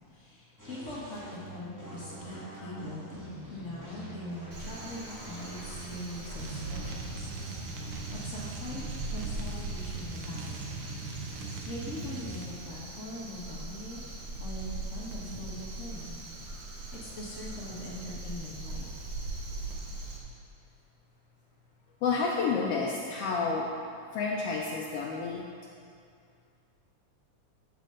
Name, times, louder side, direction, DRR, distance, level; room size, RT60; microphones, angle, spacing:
voice 1, 0.1-7.3 8.1-10.8 11.4-14.0 14.4-16.2 16.9-18.9, left 1 dB, 50° left, -5 dB, 0.9 m, -42 dB
sound 1, 0.6-10.0, right 2 dB, 10° right, 1.2 m, -46 dB
Crow, 4.5-20.2, right 2 dB, 55° right, 1.5 m, -41 dB
sound 2, 6.4-12.5, right 3 dB, 75° right, 2.3 m, -40 dB
voice 2, 22.0-23.7 24.1-25.4, left 4 dB, 75° left, -3 dB, 1.4 m, -30 dB
14.0 x 6.8 x 3.8 m, 2.3 s
omnidirectional pair, 3.6 m